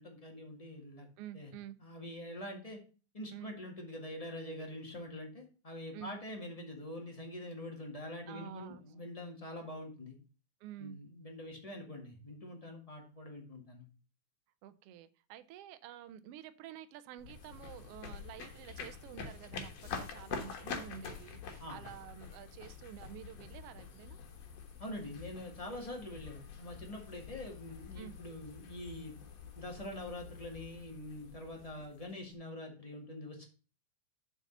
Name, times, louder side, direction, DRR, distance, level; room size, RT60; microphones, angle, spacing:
voice 1, 0.0-1.1 1.3-1.5 1.8-2.8 3.1-10.1 10.8-13.9 21.6-21.9 24.8-29.2 29.5-33.5, left 1 dB, 15° left, 2 dB, 1.4 m, -45 dB
voice 2, 1.2-1.8 3.3-3.5 5.9-6.1 8.3-8.8 10.6-11.0 14.6-24.2 28.0-28.1, right 11 dB, 75° right, 12 dB, 1.4 m, -49 dB
sound 1, 17.2-32.3, left 6 dB, 60° left, 2.4 m, -47 dB
7.2 x 5.7 x 5.4 m, 0.36 s
omnidirectional pair, 3.5 m